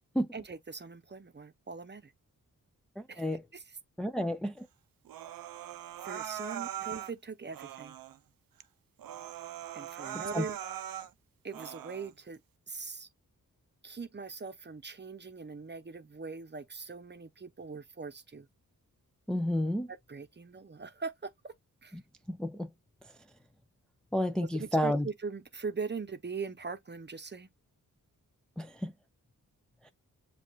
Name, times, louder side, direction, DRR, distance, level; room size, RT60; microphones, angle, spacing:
voice 1, 0.3-2.1 3.1-3.6 6.0-8.0 9.7-10.6 11.4-12.4 12.7-13.1 13.8-18.5 19.9-21.5 21.8-22.0 24.4-27.5, right 5 dB, 30° right, 0.8 m, -41 dB
voice 2, 3.0-3.4 4.0-4.7 10.1-10.4 19.3-19.9 21.9-22.0 22.3-22.7 24.1-25.1 28.6-28.9 29.8-29.9, left 1 dB, ahead, 0.4 m, -31 dB
Human voice, 5.1-7.1 7.5-8.2 8.6-8.7 9.0-11.1 11.5-12.1, right 11 dB, 85° right, 0.5 m, -41 dB
7.4 x 2.5 x 2.3 m
cardioid pair, 80°, 33 cm